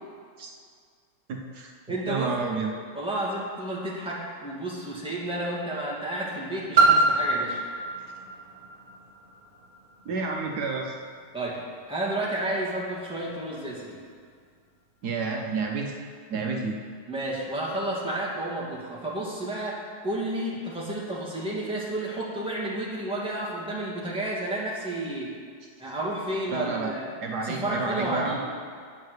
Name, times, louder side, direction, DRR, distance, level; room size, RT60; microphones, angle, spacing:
voice 1, 1.3-1.7 2.1-2.7 10.0-11.0 15.0-15.9 16.3-16.8 26.5-26.9 27.2-28.4, right 4 dB, 70° right, 1 dB, 1.4 m, -30 dB
voice 2, 1.9-2.4 2.9-7.6 11.3-11.6 11.9-14.0 17.1-25.3 25.8-27.1 27.4-28.4, right 1 dB, 5° right, -5 dB, 1.7 m, -31 dB
Piano, 6.8-12.2 12.9-13.0, right 3 dB, 25° right, 1.8 m, -26 dB
8.6 x 7.6 x 6.4 m, 2.1 s
omnidirectional pair, 1.8 m